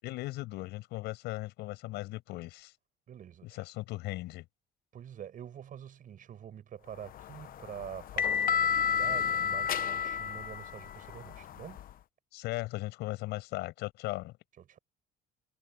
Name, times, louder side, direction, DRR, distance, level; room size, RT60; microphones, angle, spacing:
voice 1, 0.0-2.7 3.4-4.4 12.3-14.4, left 18 dB, 90° left, 6.8 m, -37 dB
voice 2, 3.1-3.6 4.9-11.8 14.7-14.8, right 9 dB, 55° right, 7.6 m, -46 dB
sound 1, 7.1-11.9, left 7 dB, 55° left, 1.0 m, -31 dB
cardioid pair, 110°, 17 cm